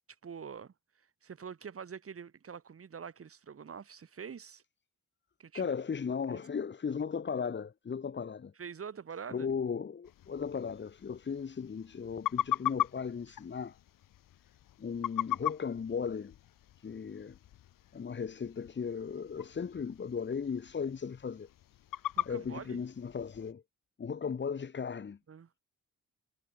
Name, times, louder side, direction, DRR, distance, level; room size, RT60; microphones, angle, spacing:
voice 1, 0.2-4.6 5.4-5.8 6.3-6.4 8.5-9.5 22.1-22.8 25.3-25.5, right 6 dB, 45° right, 6.8 m, -45 dB
voice 2, 5.5-8.5 9.3-13.7 14.8-16.3 16.8-17.4 17.9-21.5 22.2-23.6 24.0-25.2, left 6 dB, 35° left, 1.9 m, -36 dB
sound 1, 10.0-23.5, left 12 dB, 80° left, 1.3 m, -40 dB
wide cardioid pair, 155°, 33 cm